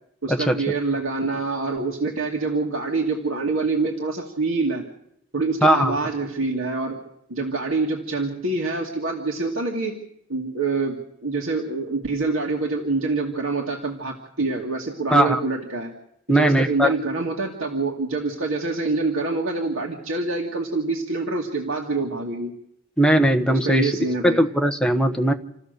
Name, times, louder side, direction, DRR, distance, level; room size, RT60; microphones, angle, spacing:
voice 1, 0.2-4.8 5.3-7.0 7.3-10.0 10.3-15.9 16.3-22.5 23.5-24.4, right 3 dB, 85° right, -1 dB, 2.3 m, -26 dB
voice 2, 5.6-6.0 15.1-15.4 16.3-16.9 23.0-23.9 24.2-25.3, right 1 dB, 5° left, 5 dB, 1.2 m, -19 dB
28.5 x 15.5 x 6.8 m, 0.77 s
head